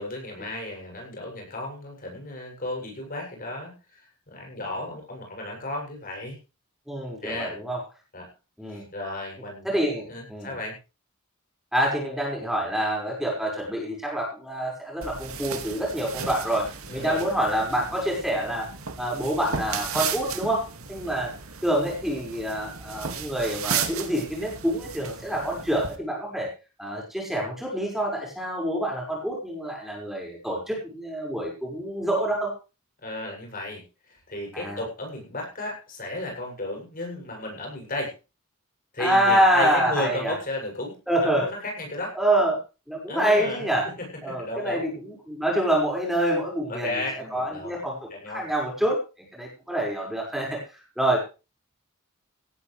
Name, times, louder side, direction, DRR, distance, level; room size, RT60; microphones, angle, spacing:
voice 1, 0.0-6.4 7.2-7.6 8.1-8.3 8.7-9.7 10.1-10.8 16.9-17.3 33.0-38.1 38.9-41.0 41.2-42.2 43.1-44.8 46.7-47.8 48.1-48.5, left 2 dB, 40° left, 1 dB, 7.6 m, -34 dB
voice 2, 6.9-7.8 8.6-8.8 9.6-10.5 11.7-18.7 19.0-21.3 21.6-26.5 26.8-32.5 34.5-34.8 39.0-40.3 41.1-41.5 42.2-42.6 42.9-43.9 44.2-46.9 47.3-48.0 48.3-49.0 49.3-50.6 51.0-51.2, right 1 dB, ahead, -2 dB, 5.8 m, -26 dB
sound 1, 15.0-26.0, right 7 dB, 80° right, 2.4 m, -35 dB
17.5 x 13.5 x 3.4 m, 0.32 s
head